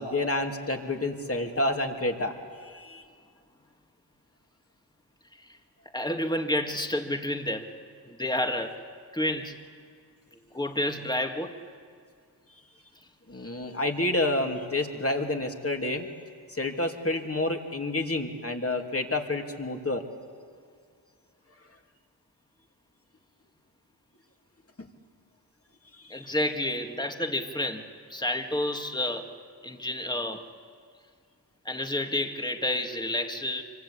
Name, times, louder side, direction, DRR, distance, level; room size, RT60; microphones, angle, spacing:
voice 1, 0.0-3.0 13.3-16.1 16.5-20.0 26.0-26.3, left 2 dB, 30° left, 3 dB, 2.9 m, -29 dB
voice 2, 5.9-7.7 8.0-8.8 9.1-9.6 10.5-11.6 26.1-29.3 29.6-30.5 31.6-33.6, left 1 dB, 10° left, 5 dB, 2.2 m, -30 dB
25.0 x 25.0 x 8.6 m, 2.1 s
cardioid pair, 50°, 46 cm